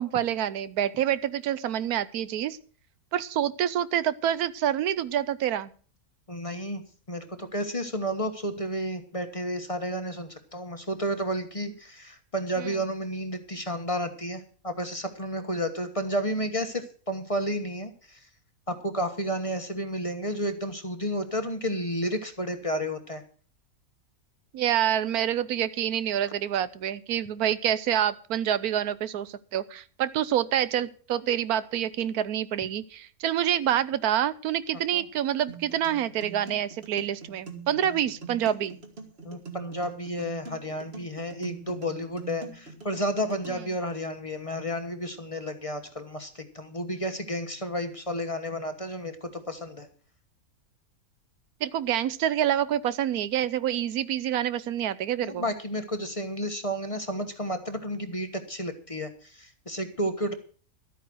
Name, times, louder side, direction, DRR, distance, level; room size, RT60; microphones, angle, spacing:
voice 1, 0.0-2.6 3.1-5.7 12.6-12.7 24.5-38.8 51.6-55.4, right 10 dB, 80° right, 16 dB, 1.2 m, -27 dB
voice 2, 6.3-6.8 7.1-18.2 18.7-23.2 34.9-35.1 39.2-49.9 55.2-60.3, equal, 25° left, 7 dB, 1.3 m, -31 dB
sound 1, 35.5-43.5, right 4 dB, 45° right, 2.4 m, -43 dB
13.0 x 9.1 x 6.2 m, 0.42 s
omnidirectional pair, 1.6 m